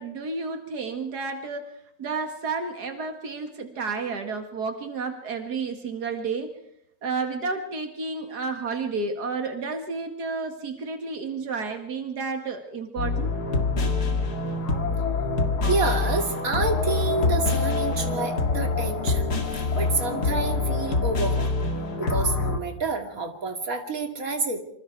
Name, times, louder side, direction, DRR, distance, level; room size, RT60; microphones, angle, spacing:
voice 1, 0.0-1.7 2.0-6.5 7.0-13.3, right 4 dB, 85° right, 5 dB, 2.3 m, -31 dB
sound 1, 13.0-22.6, left 3 dB, 85° left, 2.6 m, -25 dB
voice 2, 15.7-19.3 19.7-21.5 22.0-24.6, right 4 dB, 60° right, 4 dB, 2.9 m, -28 dB
27.0 x 25.5 x 4.6 m, 0.76 s
omnidirectional pair, 1.7 m